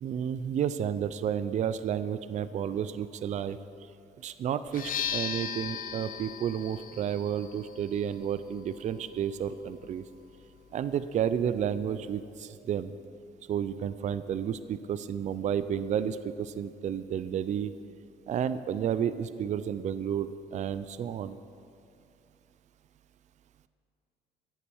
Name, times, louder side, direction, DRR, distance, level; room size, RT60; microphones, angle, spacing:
voice 1, 0.0-3.6 4.2-10.1 10.7-12.9 13.5-17.7 18.3-21.4, right 8 dB, 45° right, 14 dB, 0.5 m, -31 dB
sound 1, 4.7-12.4, left 8 dB, 55° left, 1.0 m, -40 dB
14.0 x 8.4 x 7.0 m, 2.6 s
cardioid pair, 110°, 17 cm